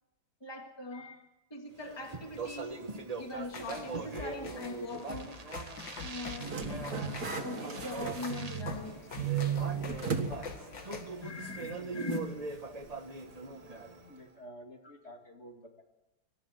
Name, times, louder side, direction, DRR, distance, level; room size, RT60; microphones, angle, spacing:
voice 1, 0.4-1.2 1.5-2.8 3.2-5.4 6.0-6.5 6.8-9.0 11.2-12.2, left 2 dB, 15° left, 3 dB, 2.0 m, -41 dB
Speech, 1.8-14.2, right 4 dB, 25° right, 1.1 m, -42 dB
sound 1, 3.5-11.0, left 4 dB, 90° left, 2.8 m, -45 dB
sound 2, 6.4-8.9 9.1-10.4 10.7-10.8 12.1-12.2, right 7 dB, 55° right, 2.2 m, -34 dB
voice 2, 10.8-11.2 11.6-12.0 12.7-15.8, equal, 40° left, 2 dB, 2.5 m, -53 dB
25.0 x 13.0 x 8.0 m, 0.98 s
omnidirectional pair, 1.9 m